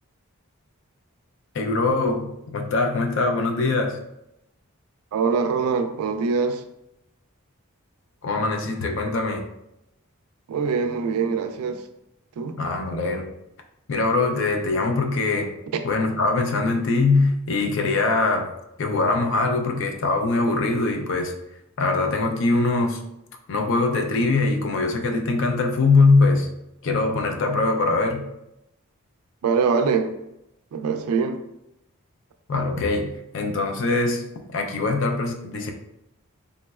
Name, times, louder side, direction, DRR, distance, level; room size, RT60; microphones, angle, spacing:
voice 1, 1.5-4.0 8.2-9.4 12.6-13.3 13.9-15.5 15.8-18.5 18.8-21.3 21.8-23.0 23.5-26.5 26.8-28.3 32.5-34.2 34.5-35.7, left 3 dB, 55° left, 3 dB, 0.4 m, -22 dB
voice 2, 5.1-6.6 10.5-11.8 12.4-12.6 15.7-15.8 29.4-30.1 30.7-31.4, right 5 dB, 80° right, 7 dB, 0.3 m, -23 dB
3.5 x 2.0 x 2.3 m, 0.84 s
head